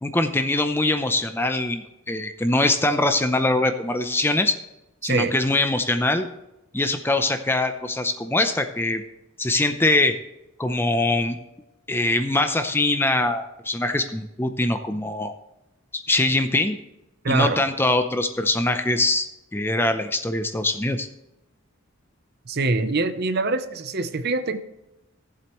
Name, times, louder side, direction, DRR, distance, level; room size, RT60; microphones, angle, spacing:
voice 1, 0.0-4.6 5.0-6.3 6.7-9.0 9.4-10.1 10.6-11.4 11.9-15.3 15.9-16.8 17.3-19.3 19.5-21.1, left 2 dB, 10° left, 8 dB, 0.6 m, -23 dB
voice 2, 5.0-5.3 17.2-17.6 22.5-24.6, right 3 dB, 50° right, 10 dB, 0.7 m, -24 dB
17.0 x 7.7 x 3.1 m, 0.92 s
head